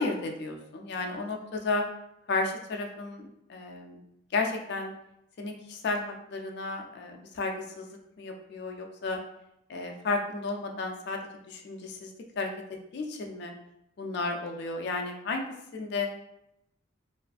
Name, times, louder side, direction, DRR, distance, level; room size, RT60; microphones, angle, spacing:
voice 1, 0.0-1.8 2.3-4.0 4.3-4.9 5.4-7.9 8.2-9.2 9.7-11.2 11.5-12.5 12.9-13.5 14.0-15.5 15.7-16.1, left 3 dB, 55° left, 3 dB, 0.3 m, -33 dB
2.4 x 2.3 x 2.4 m, 0.81 s
head